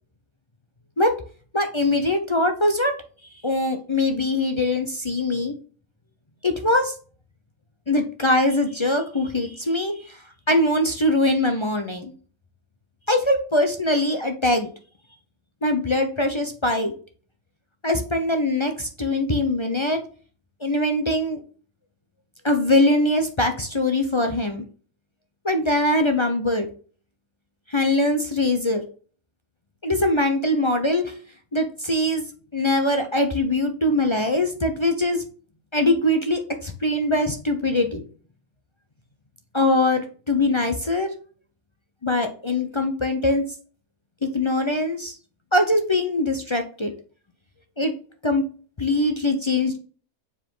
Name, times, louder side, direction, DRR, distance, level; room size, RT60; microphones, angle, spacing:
voice 1, 1.5-2.9 3.4-5.6 6.4-6.9 7.9-10.2 10.5-12.1 13.1-14.7 15.6-16.9 17.8-20.0 20.6-21.4 22.4-24.6 25.4-26.7 27.7-28.8 29.8-31.1 31.5-32.2 32.5-35.2 35.7-38.0 39.5-41.1 42.0-43.4 44.2-45.1 45.5-46.9 47.8-47.9 48.2-48.4 48.8-49.8, left 1 dB, 35° left, 5 dB, 0.5 m, -22 dB
7.2 x 4.8 x 3.8 m, 0.41 s
omnidirectional pair, 1.5 m